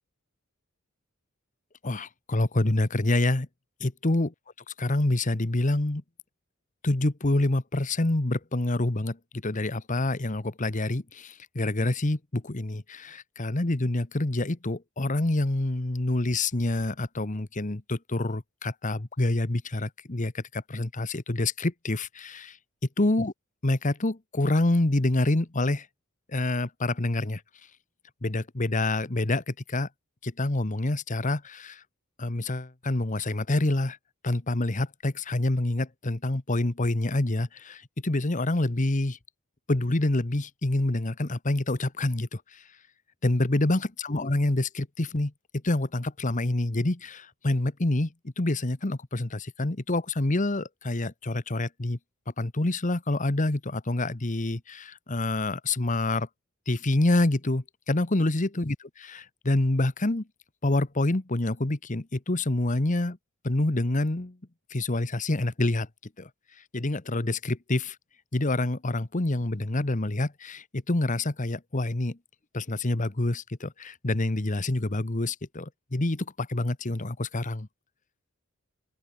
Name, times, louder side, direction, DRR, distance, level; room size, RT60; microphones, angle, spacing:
voice 1, 1.8-3.5 3.8-4.3 4.7-6.0 6.8-22.6 23.0-23.3 23.6-25.9 26.3-27.4 28.2-29.9 30.2-31.8 32.2-34.0 34.2-39.2 39.7-42.6 43.2-45.3 45.6-52.0 52.4-56.3 56.7-60.3 60.6-63.2 63.4-64.4 64.7-65.9 66.2-66.3 66.7-68.0 68.3-72.2 72.5-77.7, left 2 dB, 35° left, 1.2 m, -27 dB
open air
head